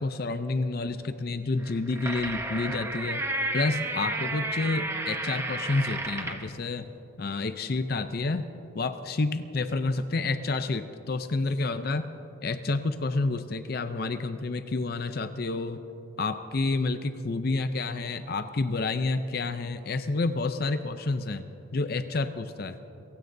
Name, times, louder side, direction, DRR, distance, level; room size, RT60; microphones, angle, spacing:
voice 1, 0.0-3.2 3.5-6.9 7.2-8.4 8.7-12.1 12.4-15.8 16.2-21.4 21.7-22.8, left 3 dB, 50° left, 10 dB, 0.5 m, -29 dB
sound 1, 1.6-6.5, right 2 dB, 15° right, 0.8 m, -32 dB
27.5 x 16.0 x 2.7 m, 3.0 s
head